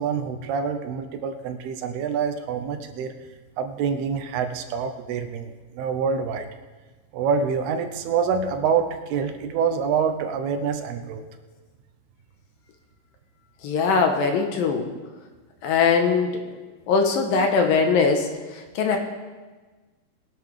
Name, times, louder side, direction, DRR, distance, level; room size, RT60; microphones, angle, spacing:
voice 1, 0.0-3.1 3.6-6.5 7.1-11.2, right 6 dB, 80° right, 6 dB, 2.8 m, -26 dB
voice 2, 13.6-14.9 15.6-16.3 16.9-19.0, left 5 dB, 70° left, 4 dB, 2.5 m, -21 dB
21.5 x 11.0 x 3.4 m, 1.3 s
omnidirectional pair, 4.6 m